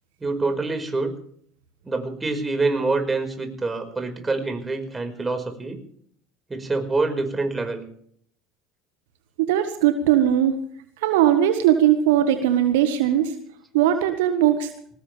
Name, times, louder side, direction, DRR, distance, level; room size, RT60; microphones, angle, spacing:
voice 1, 0.2-1.1 1.8-5.8 6.5-7.9, right 3 dB, 20° right, 6 dB, 5.2 m, -26 dB
voice 2, 9.4-10.6 11.0-13.3 13.7-14.7, right 11 dB, 70° right, 8 dB, 1.6 m, -19 dB
22.0 x 19.0 x 3.5 m, 0.62 s
hypercardioid pair, 70°, 0 cm